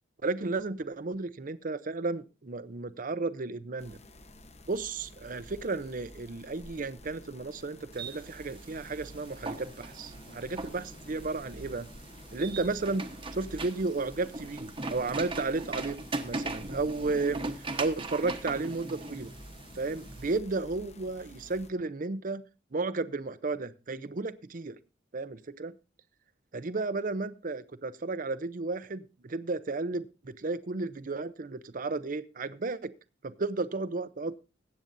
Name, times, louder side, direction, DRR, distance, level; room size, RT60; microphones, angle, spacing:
voice 1, 0.2-4.0 4.7-11.9 12.3-13.0 13.3-16.0 16.2-17.4 17.8-19.3 19.7-22.4 22.7-24.8 25.1-25.7 26.5-32.9 33.2-34.4, right 3 dB, 45° right, 14 dB, 0.6 m, -33 dB
sound 1, 3.8-21.7, left 1 dB, 35° left, 1.0 m, -50 dB
sound 2, 7.9-20.4, right 2 dB, 25° right, 1.1 m, -40 dB
21.0 x 8.7 x 2.6 m, 0.32 s
head